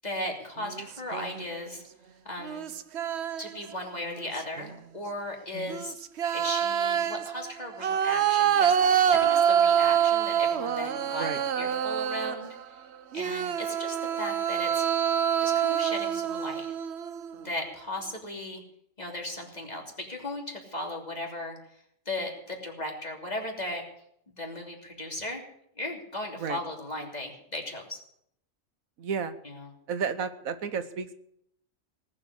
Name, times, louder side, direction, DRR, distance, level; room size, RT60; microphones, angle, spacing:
voice 1, 0.0-1.8 2.2-2.7 3.4-5.9 6.3-11.3 11.6-12.6 13.1-14.9 15.4-16.7 17.4-18.6 19.0-21.6 22.0-23.8 24.3-25.4 25.8-28.0 29.4-29.7, left 1 dB, 30° left, 1 dB, 3.2 m, -36 dB
sound 1, 0.6-1.5 2.4-3.7 4.1-4.7 5.7-12.6 13.1-17.4, right 9 dB, 55° right, 1.0 m, -26 dB
voice 2, 5.5-5.8 11.1-11.4 26.4-26.6 29.0-29.4 29.9-31.1, right 6 dB, 90° right, 11 dB, 1.5 m, -32 dB
18.5 x 7.8 x 9.7 m, 0.72 s
omnidirectional pair, 1.4 m